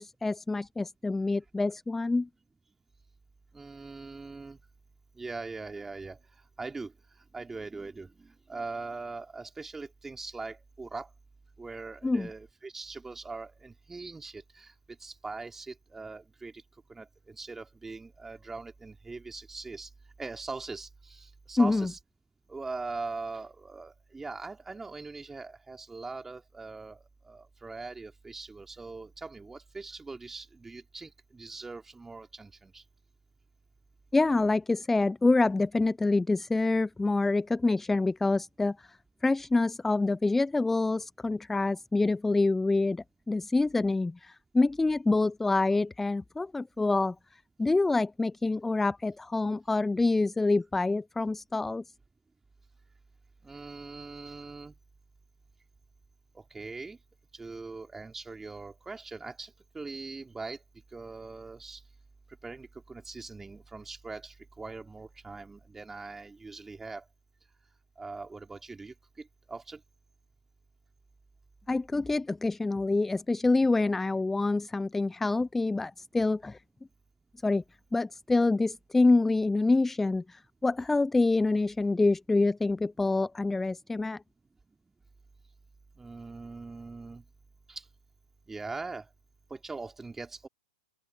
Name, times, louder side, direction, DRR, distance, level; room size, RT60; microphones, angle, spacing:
voice 1, 0.0-2.3 12.0-12.3 21.6-21.9 34.1-38.9 39.2-47.1 47.6-51.8 71.7-76.6 77.4-77.6 77.9-84.2, left 3 dB, 5° left, 0.4 m, -26 dB
voice 2, 3.5-4.6 5.2-6.2 6.6-6.9 7.3-11.1 11.6-14.7 15.0-16.5 16.9-19.9 20.2-22.0 22.5-32.8 53.4-54.7 56.3-57.0 57.4-60.6 60.9-61.8 62.4-67.0 68.0-69.8 86.0-87.2 87.7-87.8 88.5-89.1 89.5-90.5, right 3 dB, 10° right, 3.0 m, -41 dB
open air
figure-of-eight pair, 105°, 3 cm